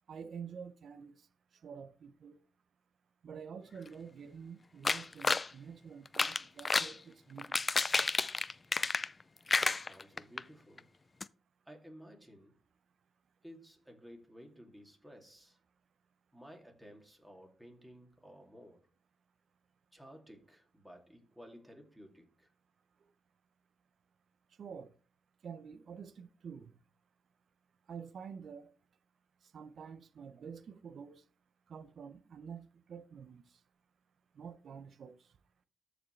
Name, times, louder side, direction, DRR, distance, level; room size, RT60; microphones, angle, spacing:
voice 1, 0.1-1.3 1.5-2.4 3.2-7.5 24.6-24.9 25.4-26.7 27.9-28.7 29.4-31.2 31.7-33.6 34.3-35.3, right 6 dB, 65° right, 0.6 m, -48 dB
sound 1, 4.9-5.5 6.1-7.0 7.4-9.2 9.5-10.4 10.8-10.9 11.2-11.3, left 3 dB, 35° left, 0.4 m, -31 dB
voice 2, 9.6-10.9 11.7-12.6 13.4-15.6 16.3-18.9 19.9-22.5, equal, 10° right, 2.6 m, -55 dB
13.5 x 5.0 x 3.2 m
cardioid pair, 80°, 0 cm